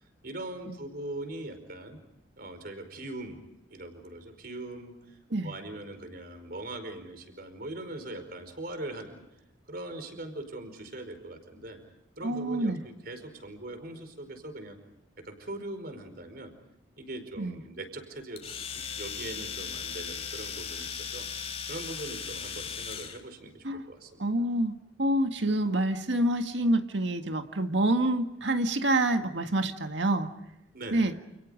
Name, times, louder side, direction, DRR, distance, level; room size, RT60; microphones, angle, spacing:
voice 1, 0.2-2.0 2.4-5.2 5.4-9.2 9.7-11.8 12.2-14.8 15.2-16.5 17.0-18.4 18.7-21.3 21.7-24.2 30.7-31.2, right 2 dB, 50° right, 8 dB, 4.9 m, -41 dB
voice 2, 12.2-12.8 17.4-17.6 23.6-23.8 24.2-30.3 30.9-31.1, right 1 dB, 70° right, 6 dB, 1.8 m, -27 dB
Domestic sounds home sounds, 18.4-23.2, left 7 dB, 35° left, 3.5 m, -37 dB
30.0 x 29.0 x 5.2 m, 0.87 s
head